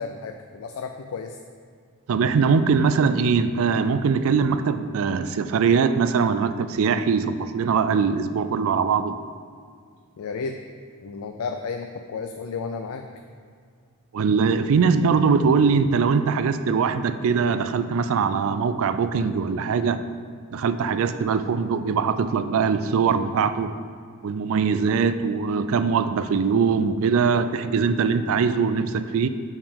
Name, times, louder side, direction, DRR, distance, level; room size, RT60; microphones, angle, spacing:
voice 1, 0.0-1.4 10.2-10.6 11.0-13.1 21.4-21.5, left 5 dB, 70° left, 5 dB, 0.4 m, -32 dB
voice 2, 2.1-9.2 14.1-20.0 20.5-23.7 24.2-29.3, right 5 dB, 65° right, 11 dB, 0.3 m, -22 dB
5.4 x 4.8 x 5.2 m, 2.1 s
head